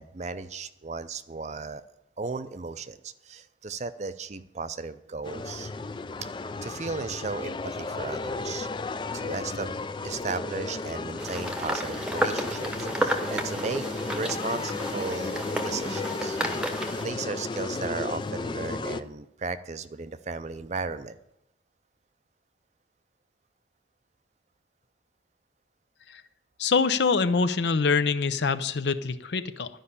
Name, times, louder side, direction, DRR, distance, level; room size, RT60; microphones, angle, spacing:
voice 1, 0.0-1.8 2.2-5.7 6.2-6.3 6.6-8.7 9.1-9.8 10.0-15.4 15.6-16.4 17.0-21.2, right 4 dB, 40° right, 13 dB, 0.5 m, -35 dB
sound 1, 5.2-19.0, left 3 dB, 25° left, 0.3 m, -34 dB
sound 2, 11.2-17.0, equal, 5° right, 0.9 m, -32 dB
voice 2, 26.6-29.7, left 4 dB, 70° left, 12 dB, 0.6 m, -24 dB
12.0 x 5.4 x 8.5 m, 0.86 s
head